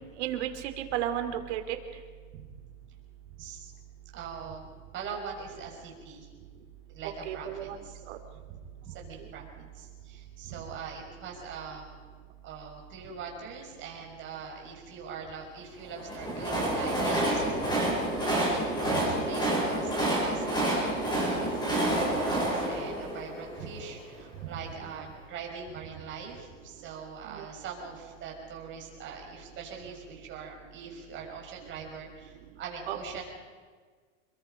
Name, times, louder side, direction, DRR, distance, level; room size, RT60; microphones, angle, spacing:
voice 1, 0.2-1.8 7.2-7.8 8.1-8.2 27.3-27.4 32.9-33.0, right 11 dB, 60° right, 7 dB, 3.0 m, -33 dB
voice 2, 3.4-3.7 4.1-4.6 4.9-6.3 6.9-8.0 8.5-8.6 8.8-11.8 12.4-33.2, right 6 dB, 30° right, -1 dB, 6.0 m, -42 dB
Train, 15.9-24.1, right 1 dB, 10° left, 6.8 m, -29 dB
27.5 x 22.0 x 5.3 m, 1.5 s
supercardioid pair, 150°, 38 cm